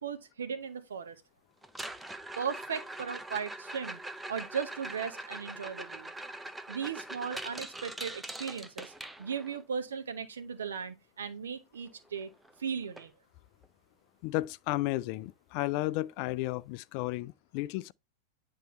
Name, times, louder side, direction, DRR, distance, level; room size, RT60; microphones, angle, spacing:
voice 1, 0.0-1.2 2.4-4.0 4.3-6.1 6.7-8.9 9.2-12.3 12.6-13.1, right 6 dB, 65° right, 1.1 m, -37 dB
sound 1, 1.6-9.6 11.9-12.0 12.2-12.5 13.0-13.1 13.6-13.7 15.6-15.7, right 1 dB, 10° right, 0.6 m, -42 dB
voice 2, 14.2-17.9, left 18 dB, 45° left, 0.3 m, -33 dB
9.3 x 4.1 x 3.1 m
figure-of-eight pair, 90°, 0 cm